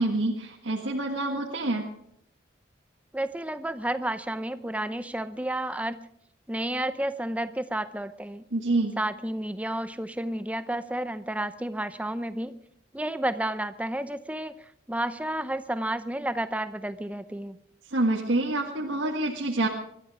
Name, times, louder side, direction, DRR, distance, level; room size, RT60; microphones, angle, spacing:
voice 1, 0.0-1.8 8.5-8.9 17.9-19.7, right 2 dB, 90° right, -1 dB, 1.7 m, -27 dB
voice 2, 3.1-6.1 6.5-8.4 9.0-12.6 12.9-17.6, right 1 dB, 5° right, 12 dB, 0.6 m, -31 dB
21.0 x 13.0 x 4.9 m, 0.72 s
head